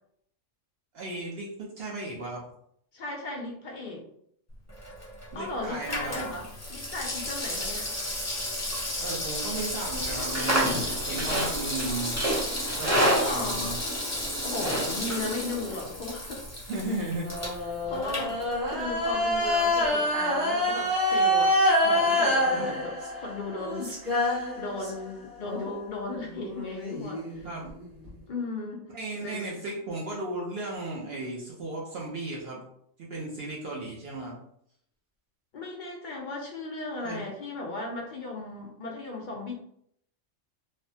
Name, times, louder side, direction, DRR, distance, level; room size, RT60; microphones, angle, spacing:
voice 1, 0.9-2.4 5.3-6.2 9.0-12.2 12.7-13.8 14.6-14.7 16.7-17.3 22.5-22.7 27.4-27.7 28.9-32.6 33.1-34.4 37.0-37.2, right 2 dB, 60° right, -4 dB, 0.8 m, -35 dB
voice 2, 2.9-4.0 5.3-7.9 13.0-13.8 14.4-16.4 17.0-17.1 17.8-18.4 18.6-27.5 28.3-28.8 29.2-29.5 35.5-39.5, left 2 dB, 60° left, 0 dB, 0.5 m, -36 dB
Water tap faucet / Sink (filling or washing), 4.7-19.0 19.3-19.4, left 1 dB, 15° left, 0.7 m, -34 dB
Livestock farm animals working animals, 10.1-15.8, equal, 25° right, 0.3 m, -29 dB
sound 1, 17.2-25.1 25.4-28.1, left 1 dB, 80° right, 1.6 m, -27 dB
3.3 x 2.0 x 2.7 m, 0.71 s
omnidirectional pair, 1.3 m